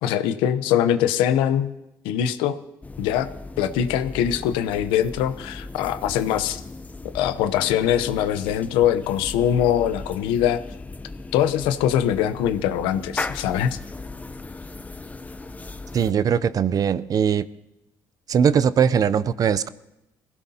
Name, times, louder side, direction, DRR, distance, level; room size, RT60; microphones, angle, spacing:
voice 1, 0.0-1.7 2.0-2.5 3.0-3.3 3.6-6.6 7.1-10.6 11.3-13.8, left 10 dB, 90° left, 11 dB, 0.7 m, -22 dB
sound 1, 2.8-16.1, left 3 dB, 20° left, 0.7 m, -37 dB
voice 2, 15.9-17.5 18.3-19.7, right 7 dB, 45° right, 17 dB, 0.6 m, -20 dB
22.0 x 16.0 x 2.8 m, 0.91 s
supercardioid pair, 80°, 8 cm